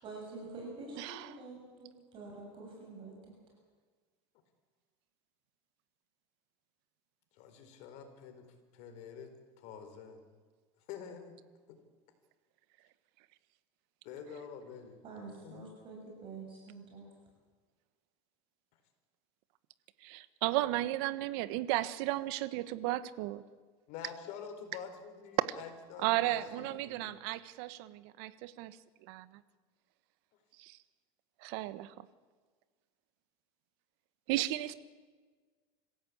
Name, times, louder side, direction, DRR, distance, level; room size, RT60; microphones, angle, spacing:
voice 1, 0.0-3.1 15.0-17.1 26.5-26.6 26.9-27.1, right 3 dB, 40° right, 0 dB, 7.5 m, -47 dB
voice 2, 1.0-1.4 20.0-23.4 25.5-25.6 26.0-29.4 30.6-30.8 31.4-32.1 34.3-34.7, right 16 dB, 70° right, 14 dB, 1.2 m, -34 dB
voice 3, 7.3-8.5 8.7-10.2 10.9-11.4 11.7-11.8 14.0-15.0 15.4-15.6 23.9-27.2, left 7 dB, 60° left, 7 dB, 4.4 m, -47 dB
26.0 x 16.5 x 8.6 m, 1.5 s
supercardioid pair, 140°, 14 cm